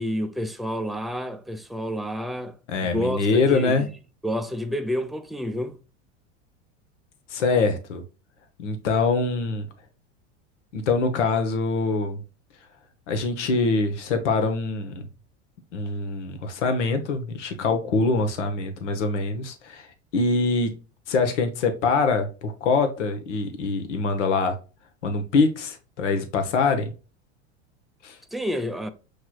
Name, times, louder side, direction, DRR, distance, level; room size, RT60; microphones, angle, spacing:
voice 1, 0.0-2.5 2.8-3.9 4.2-5.7 28.3-28.9, equal, ahead, 0.3 m, -29 dB
voice 2, 2.7-3.9 7.3-8.0 8.6-9.7 10.7-12.2 13.1-15.0 15.7-19.9 20.1-20.7 21.1-24.6 25.0-26.9 28.0-28.2, left 3 dB, 85° left, 1.0 m, -24 dB
6.5 x 3.0 x 2.3 m
hypercardioid pair, 105°, 35 cm